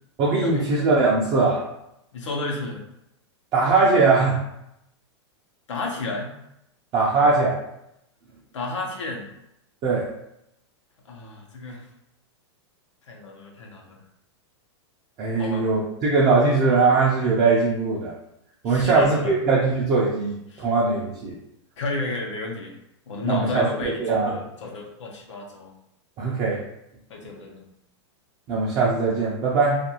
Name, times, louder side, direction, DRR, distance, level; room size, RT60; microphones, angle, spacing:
voice 1, 0.2-1.6 3.5-4.4 6.9-7.6 9.8-10.1 15.2-18.1 18.6-21.3 23.2-23.7 24.0-24.3 26.2-26.6 28.5-29.8, right 4 dB, 25° right, -5 dB, 0.4 m, -20 dB
voice 2, 2.1-2.8 5.7-6.3 8.5-9.3 11.1-11.9 13.1-14.0 15.4-15.6 18.7-19.4 20.5-20.7 21.8-22.8 23.1-25.7 27.1-27.6, left 3 dB, 90° left, 0 dB, 0.8 m, -32 dB
2.4 x 2.2 x 2.8 m, 0.81 s
supercardioid pair, 150°, 15 cm